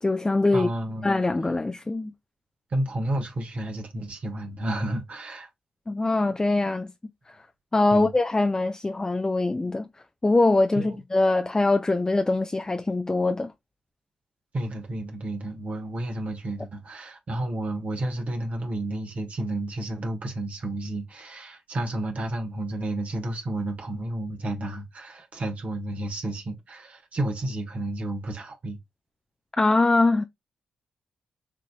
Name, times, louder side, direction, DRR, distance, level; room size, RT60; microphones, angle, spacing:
voice 1, 0.0-0.7 1.0-2.1 5.9-6.9 7.3-7.4 7.7-9.9 10.2-13.5 29.6-30.2, left 2 dB, 25° left, 0.5 m, -23 dB
voice 2, 0.5-1.1 2.7-5.5 7.9-8.1 10.7-11.0 14.5-28.8, right 1 dB, 60° right, 1.4 m, -31 dB
6.0 x 2.9 x 2.2 m
hypercardioid pair, 40°, 3 cm